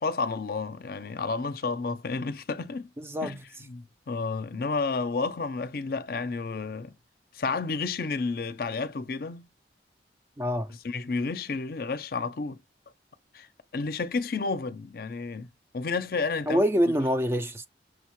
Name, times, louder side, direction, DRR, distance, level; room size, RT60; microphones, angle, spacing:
voice 1, 0.0-2.9 3.2-3.4 3.7-6.9 7.3-9.5 10.8-12.6 13.3-13.5 13.7-15.5 15.7-16.6, left 4 dB, 55° left, 0.5 m, -31 dB
voice 2, 3.0-3.4 10.4-10.7 16.5-17.7, equal, 15° right, 0.3 m, -25 dB
6.1 x 2.1 x 3.0 m
head